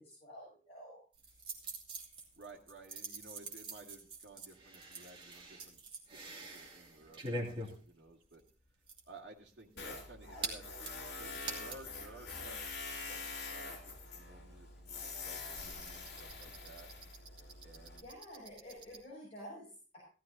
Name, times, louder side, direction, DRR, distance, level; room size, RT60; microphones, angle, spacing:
voice 1, 0.0-1.4 9.8-9.9 10.2-10.5 18.0-20.0, equal, 35° left, -6 dB, 5.9 m, -51 dB
sound 1, 1.1-12.0 12.3-12.4 12.6-19.0, right 2 dB, 30° right, 2.5 m, -46 dB
voice 2, 2.3-5.8 6.1-8.4 9.1-12.8 13.1-16.9 17.6-18.1, right 2 dB, 70° right, -1 dB, 2.3 m, -56 dB
Tools, 9.8-18.0, left 3 dB, 65° left, 2.7 m, -45 dB
16.0 x 13.5 x 2.7 m, 0.39 s
head